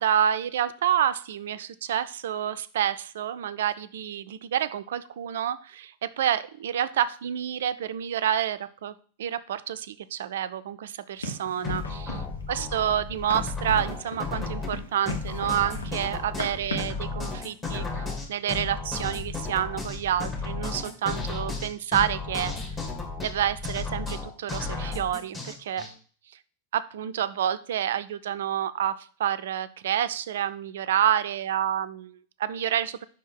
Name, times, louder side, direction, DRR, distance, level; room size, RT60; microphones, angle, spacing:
voice 1, 0.0-12.2 12.5-17.9 18.3-22.5 23.2-25.9 26.7-33.0, right 10 dB, 60° right, 14 dB, 0.4 m, -28 dB
Run, 11.2-17.0, left 1 dB, 75° left, 1.0 m, -38 dB
sound 1, 11.6-25.9, left 4 dB, 20° left, 1.9 m, -34 dB
5.6 x 4.4 x 5.9 m, 0.43 s
figure-of-eight pair, 90°, 0 cm